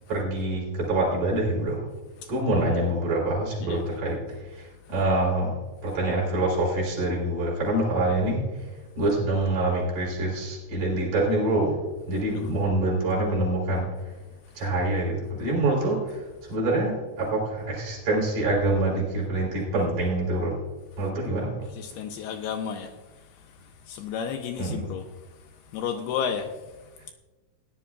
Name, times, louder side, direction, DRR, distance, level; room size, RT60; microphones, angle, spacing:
voice 1, 0.1-1.9 2.3-14.2 14.5-20.6 21.0-21.7 24.6-24.9, right 2 dB, 45° right, 4.6 m, -26 dB
voice 2, 21.8-22.9 23.9-25.0 25.7-26.5, left 7 dB, 80° left, 2.4 m, -31 dB
17.0 x 11.0 x 2.4 m
omnidirectional pair, 5.0 m